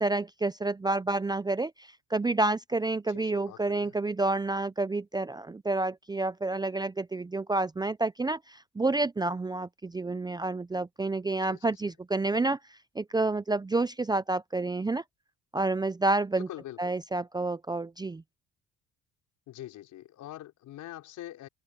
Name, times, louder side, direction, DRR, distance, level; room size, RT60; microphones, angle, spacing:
voice 1, 0.0-12.6 13.0-15.0 15.5-16.5 16.8-18.2, right 2 dB, 15° right, 0.6 m, -29 dB
voice 2, 3.1-3.9 11.4-11.9 16.3-16.9 19.5-21.5, left 14 dB, 70° left, 5.5 m, -44 dB
cardioid pair, 90°, 31 cm